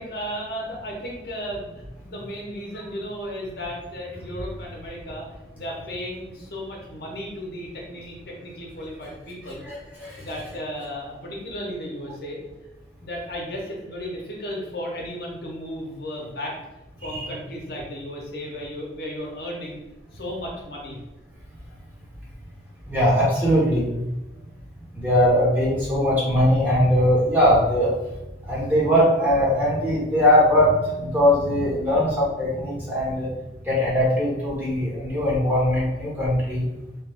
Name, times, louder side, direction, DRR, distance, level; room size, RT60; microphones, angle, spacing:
voice 1, 0.0-5.2 5.5-9.7 10.2-12.4 13.0-16.5 17.0-19.8 20.1-21.0 31.8-32.0, equal, 55° left, -2 dB, 0.7 m, -34 dB
voice 2, 9.7-10.1 17.0-17.3 22.9-23.9 25.0-27.9 28.5-33.3 33.7-36.6, equal, 10° right, -7 dB, 0.8 m, -20 dB
2.8 x 2.3 x 3.4 m, 1.0 s
head